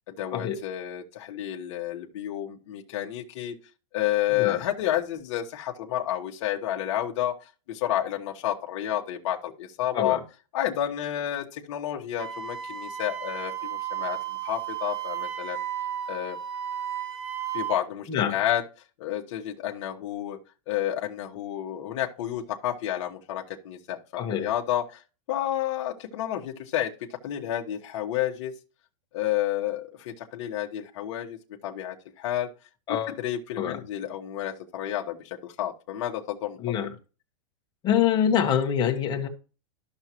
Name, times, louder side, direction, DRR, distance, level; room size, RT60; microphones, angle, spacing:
voice 1, 0.1-3.5 3.9-7.3 7.7-10.2 10.5-15.6 16.1-16.4 17.5-18.6 19.0-20.4 20.7-25.0 25.3-26.9 27.2-28.5 29.1-32.5 32.9-36.6, left 12 dB, 55° left, 1 dB, 1.3 m, -30 dB
Wind instrument woodwind instrument, 12.2-17.8, right 10 dB, 50° right, 1.2 m, -33 dB
voice 2, 18.1-18.4 24.1-24.5 32.9-33.2 33.6-33.8 36.6-36.9 37.8-39.3, left 9 dB, 25° left, 3 dB, 1.3 m, -25 dB
12.5 x 6.0 x 3.0 m, 0.35 s
supercardioid pair, 155°, 18 cm